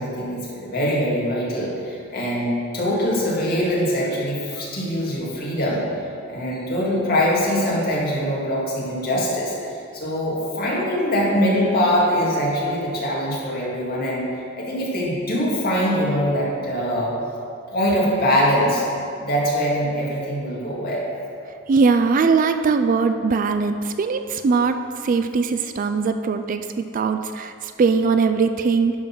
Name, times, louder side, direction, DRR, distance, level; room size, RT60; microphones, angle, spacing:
voice 1, 0.0-5.8 6.3-9.5 9.9-14.2 14.6-17.1 17.7-18.8 19.2-21.1, equal, 50° left, -5 dB, 2.0 m, -23 dB
voice 2, 21.7-24.8 25.0-28.9, right 4 dB, 40° right, 9 dB, 0.3 m, -20 dB
10.5 x 3.9 x 5.8 m, 2.5 s
head